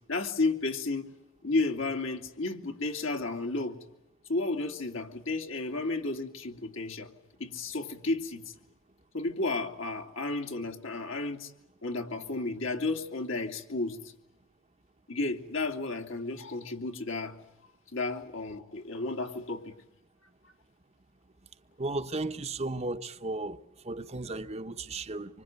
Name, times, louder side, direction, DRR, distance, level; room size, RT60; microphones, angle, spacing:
voice 1, 0.1-1.1 1.4-3.8 4.3-7.1 7.4-8.5 9.1-11.5 11.8-14.0 15.1-17.4 17.9-19.7, left 3 dB, 70° left, 2.8 m, -32 dB
voice 2, 21.8-23.6 23.8-25.4, right 2 dB, 30° right, 1.0 m, -35 dB
26.0 x 25.0 x 9.1 m
head